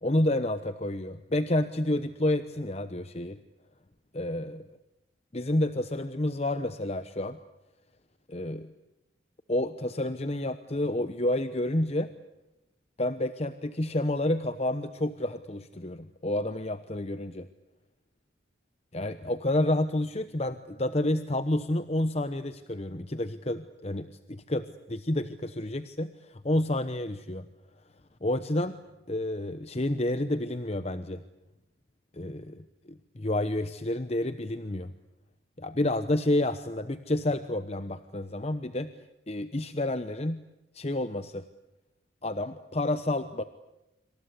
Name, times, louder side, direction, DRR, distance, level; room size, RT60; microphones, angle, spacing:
voice 1, 0.0-3.4 4.1-4.8 5.3-7.4 8.3-8.7 9.5-12.1 13.0-17.5 18.9-27.5 28.2-28.8 29.1-31.2 32.1-34.9 35.6-38.9 39.3-40.4 40.7-41.4 42.2-43.4, left 1 dB, 30° left, 11 dB, 1.0 m, -29 dB
27.0 x 26.0 x 8.4 m, 0.91 s
head